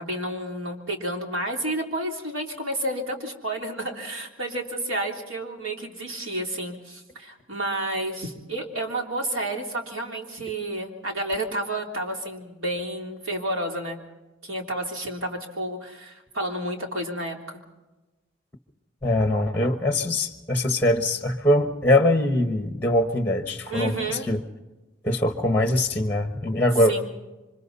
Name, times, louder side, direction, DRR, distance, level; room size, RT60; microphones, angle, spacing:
voice 1, 0.0-14.0 14.4-17.4 23.7-24.3 26.9-27.1, right 1 dB, 80° right, 1 dB, 3.4 m, -30 dB
voice 2, 19.0-24.4 25.0-26.9, left 1 dB, 10° left, 6 dB, 1.2 m, -22 dB
27.5 x 25.0 x 4.1 m, 1.1 s
head